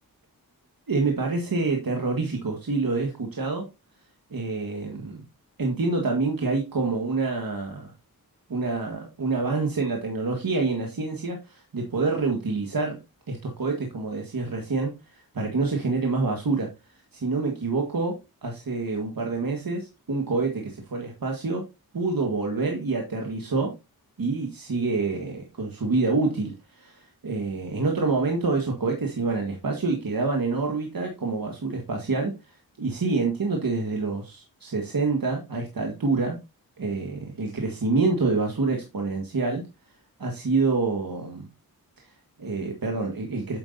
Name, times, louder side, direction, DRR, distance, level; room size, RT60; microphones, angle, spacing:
voice 1, 0.9-3.7 4.3-5.2 5.6-7.9 8.5-13.0 13.3-16.7 16.9-18.1 18.4-21.6 21.9-23.7 24.2-32.3 32.8-36.4 36.8-39.6 40.2-41.5 42.0-43.6, right 3 dB, 70° right, 2 dB, 1.7 m, -27 dB
9.6 x 7.9 x 2.6 m, 0.25 s
wide cardioid pair, 70°, 36 cm